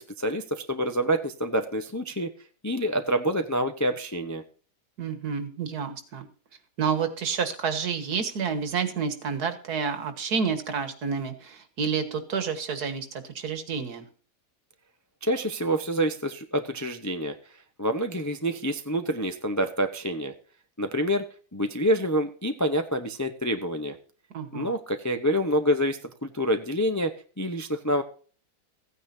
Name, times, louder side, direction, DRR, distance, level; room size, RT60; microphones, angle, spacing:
voice 1, 0.0-2.3 2.6-4.4 15.2-17.4 17.8-20.3 20.8-21.2 21.5-24.0 24.5-28.0, equal, 20° left, 6 dB, 0.5 m, -27 dB
voice 2, 5.0-6.3 6.8-14.0 24.3-24.7, right 6 dB, 70° right, 9 dB, 1.9 m, -29 dB
15.5 x 9.4 x 2.7 m, 0.40 s
omnidirectional pair, 1.8 m